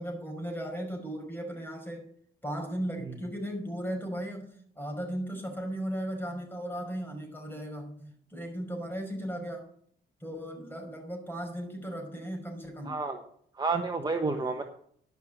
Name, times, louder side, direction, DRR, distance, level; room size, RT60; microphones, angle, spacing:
voice 1, 0.0-2.0 2.4-9.7 10.2-13.0, equal, 10° left, 2 dB, 5.5 m, -36 dB
voice 2, 12.8-13.2 13.5-14.6, right 3 dB, 20° right, 5 dB, 1.2 m, -30 dB
11.5 x 6.1 x 7.9 m, 0.63 s
cardioid pair, 90°, 20 cm